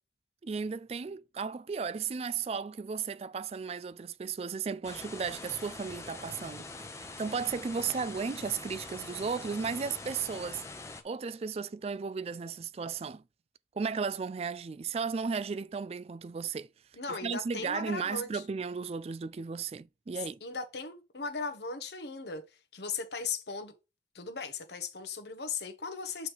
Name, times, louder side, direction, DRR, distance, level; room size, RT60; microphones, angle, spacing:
voice 1, 0.4-6.7 7.0-10.6 11.0-13.2 13.7-16.7 17.1-20.4, right 5 dB, 35° right, 0.3 m, -35 dB
sound 1, 4.8-11.0, left 3 dB, 15° left, 0.7 m, -44 dB
voice 2, 16.9-18.4 20.2-22.4 22.7-23.7 24.1-26.3, left 4 dB, 70° left, 1.2 m, -37 dB
8.0 x 3.3 x 4.7 m
head